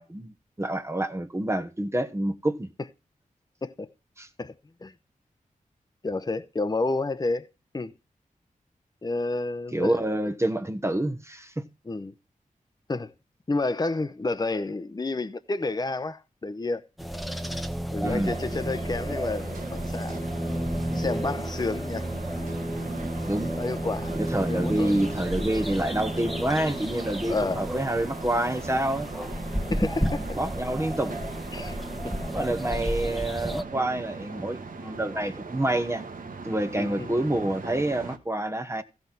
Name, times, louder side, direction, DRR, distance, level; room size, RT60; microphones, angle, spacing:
voice 1, 0.0-2.7 4.2-4.3 9.7-11.7 18.0-18.3 23.3-23.5 24.1-29.1 30.3-31.1 32.3-36.0 36.4-38.8, right 1 dB, 20° right, 1.1 m, -27 dB
voice 2, 6.0-7.5 7.7-7.9 9.0-10.0 11.9-12.1 12.9-13.1 13.5-16.8 17.9-20.2 20.9-22.1 23.6-24.2 24.5-25.0 25.4-25.5 27.3-27.6 29.6-30.4 31.5-31.8 32.0-32.1 36.8-37.1, left 3 dB, 30° left, 0.8 m, -30 dB
sound 1, 17.0-33.6, equal, ahead, 1.2 m, -32 dB
sound 2, 18.2-38.2, right 4 dB, 80° right, 1.6 m, -40 dB
15.5 x 5.9 x 4.0 m
wide cardioid pair, 75°, 14 cm